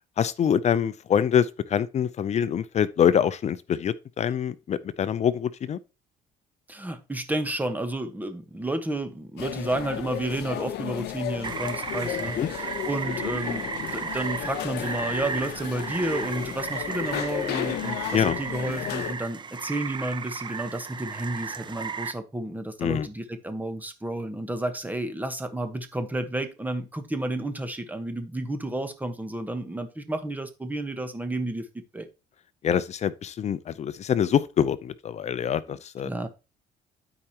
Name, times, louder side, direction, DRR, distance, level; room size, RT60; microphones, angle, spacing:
voice 1, 0.2-5.8 12.4-12.5 18.1-18.4 22.8-23.1 32.6-36.1, left 8 dB, 40° left, 0.6 m, -25 dB
voice 2, 6.7-31.7 31.9-32.1 35.7-35.8 36.0-36.3, right 1 dB, 10° right, 1.1 m, -31 dB
sound 1, 9.4-19.1, left 12 dB, 75° left, 0.8 m, -33 dB
Rain, 11.4-22.1, right 5 dB, 25° right, 0.6 m, -34 dB
12.0 x 4.8 x 2.9 m
cardioid pair, 110°, 17 cm